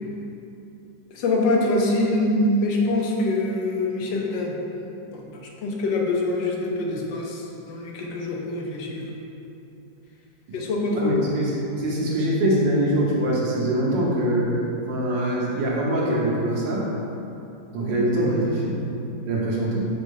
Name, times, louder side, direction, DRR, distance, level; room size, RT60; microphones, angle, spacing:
voice 1, 1.1-4.5 5.1-5.2 5.6-9.1 10.5-11.2 17.8-18.0, left 2 dB, 85° left, -1 dB, 1.5 m, -24 dB
voice 2, 10.9-14.5 14.9-16.9 17.7-18.8 19.3-19.9, right 1 dB, 80° right, -5 dB, 1.8 m, -23 dB
5.0 x 4.1 x 5.4 m, 2.9 s
omnidirectional pair, 2.0 m